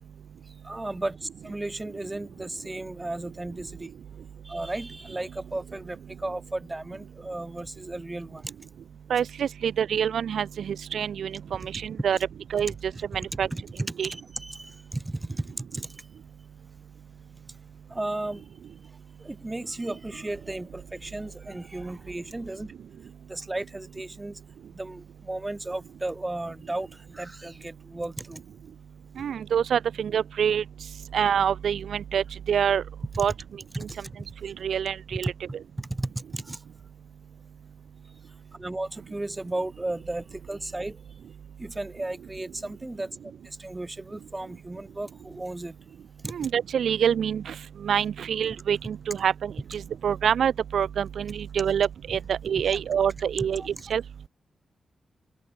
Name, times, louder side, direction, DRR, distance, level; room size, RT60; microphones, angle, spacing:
voice 1, 0.6-3.9 4.4-8.4 13.3-15.9 17.9-18.4 19.2-22.7 23.3-24.4 24.7-28.4 33.7-34.0 35.1-35.3 35.8-36.6 38.6-41.0 41.6-43.1 43.6-45.7 46.2-46.4 52.7-52.8 53.6-53.7, right 2 dB, 20° right, 1.1 m, -34 dB
voice 2, 9.1-12.2 12.5-12.7 13.1-13.5 14.0-14.1 29.2-30.6 31.1-32.8 33.2-33.3 33.8-33.9 34.4-35.3 46.3-47.5 47.8-53.6 53.9-54.0, right 8 dB, 80° right, 0.4 m, -26 dB
open air
cardioid pair, 60°, 0 cm